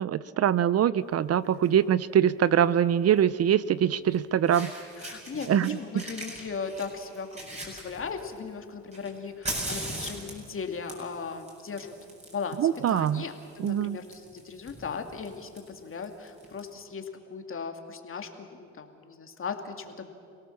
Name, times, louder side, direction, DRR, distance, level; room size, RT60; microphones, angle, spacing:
voice 1, 0.0-4.7 5.5-6.0 12.6-13.2 13.6-14.0, right 9 dB, 55° right, 17 dB, 0.6 m, -23 dB
Fire, 1.4-1.7 3.1-3.2 4.1-4.2 4.5-5.7 6.0-8.4 8.9-16.6, right 1 dB, 20° right, 7.5 m, -40 dB
voice 2, 5.0-11.9 12.3-20.2, left 5 dB, 45° left, 5 dB, 2.4 m, -38 dB
28.0 x 17.5 x 7.2 m, 2.5 s
cardioid pair, 90°, 30 cm